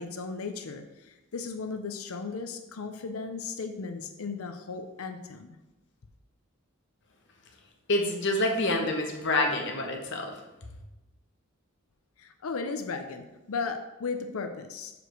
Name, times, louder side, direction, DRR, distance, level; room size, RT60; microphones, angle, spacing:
voice 1, 0.0-5.6 12.2-15.0, left 4 dB, 85° left, 7 dB, 0.6 m, -36 dB
voice 2, 7.9-10.3, left 2 dB, 60° left, 2 dB, 1.2 m, -27 dB
5.0 x 4.9 x 6.1 m, 1.0 s
head